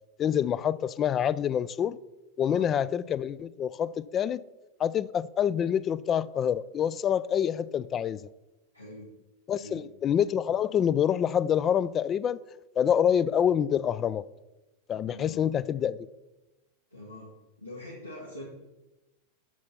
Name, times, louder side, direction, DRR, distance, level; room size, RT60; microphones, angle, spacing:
voice 1, 0.2-2.0 2.4-4.4 4.8-8.2 9.5-12.4 12.8-14.2 14.9-16.0, left 9 dB, 25° left, 0.3 m, -26 dB
voice 2, 8.7-9.1 9.5-9.9 15.1-15.5 16.9-17.3 17.6-18.5, left 1 dB, 90° left, 1.6 m, -44 dB
7.5 x 6.7 x 5.5 m
figure-of-eight pair, 90°, 0 cm